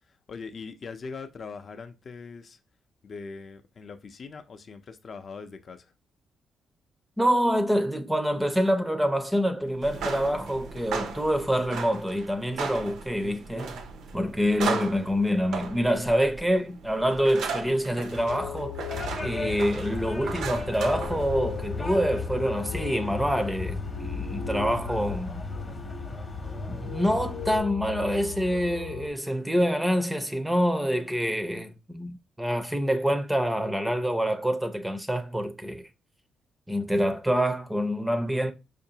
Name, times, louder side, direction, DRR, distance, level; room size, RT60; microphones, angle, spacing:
voice 1, 0.3-2.6 3.0-5.9, left 4 dB, 50° left, 0.5 m, -41 dB
voice 2, 7.2-13.8 14.1-18.8 19.2-25.4 26.7-35.9 36.7-38.5, equal, 5° right, 0.5 m, -26 dB
sound 1, 9.8-21.7, right 5 dB, 90° right, 0.6 m, -37 dB
sound 2, 18.1-29.1, left 6 dB, 85° left, 0.8 m, -38 dB
sound 3, 18.9-27.6, left 3 dB, 25° left, 0.8 m, -36 dB
4.6 x 2.5 x 2.8 m
cardioid pair, 90°, 0 cm